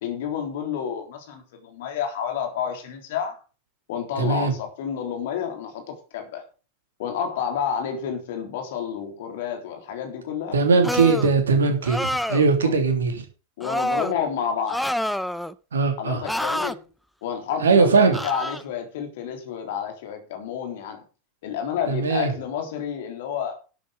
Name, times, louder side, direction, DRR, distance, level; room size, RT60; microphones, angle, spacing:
voice 1, 0.0-3.4 3.9-6.4 7.0-10.6 12.6-12.7 13.6-14.9 16.0-16.8 17.2-21.0 21.4-23.6, left 8 dB, 60° left, 3.6 m, -30 dB
voice 2, 4.2-4.5 10.5-13.2 15.7-16.2 17.6-18.2 21.9-22.3, right 4 dB, 70° right, 3.2 m, -20 dB
sound 1, 10.8-11.3 11.8-12.5 13.6-14.1 14.7-15.5 16.2-16.7 18.1-18.6, left 1 dB, ahead, 0.6 m, -27 dB
11.5 x 8.5 x 5.3 m
figure-of-eight pair, 85°, 0 cm